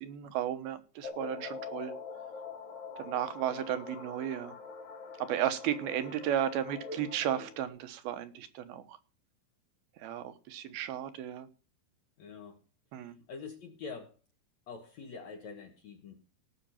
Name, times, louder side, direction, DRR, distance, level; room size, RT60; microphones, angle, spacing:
voice 1, 0.0-1.9 3.0-4.5 5.2-9.0 10.0-11.5 12.9-13.2, right 10 dB, 75° right, 10 dB, 2.9 m, -34 dB
sound 1, 1.0-7.7, left 5 dB, 85° left, 4.5 m, -44 dB
voice 2, 12.2-12.6 13.0-14.2 14.7-16.2, left 5 dB, 60° left, 4 dB, 2.1 m, -45 dB
17.5 x 6.5 x 5.7 m, 0.35 s
omnidirectional pair, 4.6 m